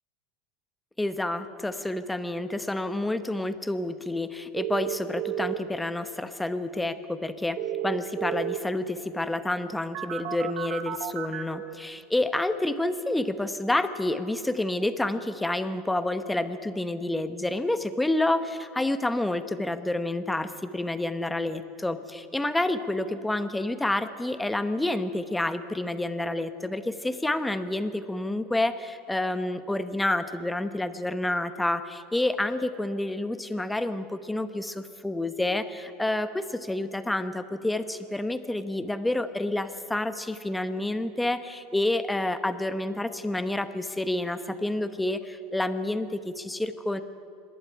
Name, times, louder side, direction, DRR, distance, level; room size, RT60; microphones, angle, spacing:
voice 1, 1.0-7.6 7.8-47.0, left 1 dB, 5° left, 11 dB, 1.0 m, -29 dB
sound 1, 4.6-5.6 7.6-8.6 9.9-11.7, right 13 dB, 55° right, 1.4 m, -32 dB
25.5 x 11.5 x 9.8 m, 2.5 s
supercardioid pair, 135°, 0 cm